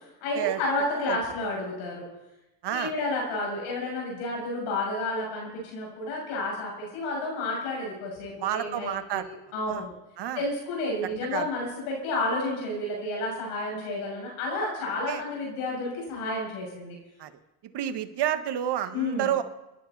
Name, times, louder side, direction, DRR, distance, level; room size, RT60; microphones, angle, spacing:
voice 1, 0.2-2.1 2.7-9.2 9.5-9.9 10.4-17.0 18.9-19.3, left 2 dB, 80° left, -1 dB, 7.0 m, -31 dB
voice 2, 8.4-9.3 9.7-9.8 10.2-10.4 11.3-11.5 15.1-15.2 17.2-17.3 17.7-19.4, right 11 dB, 55° right, 9 dB, 1.5 m, -29 dB
26.0 x 10.5 x 4.2 m, 0.97 s
supercardioid pair, 75°, 49 cm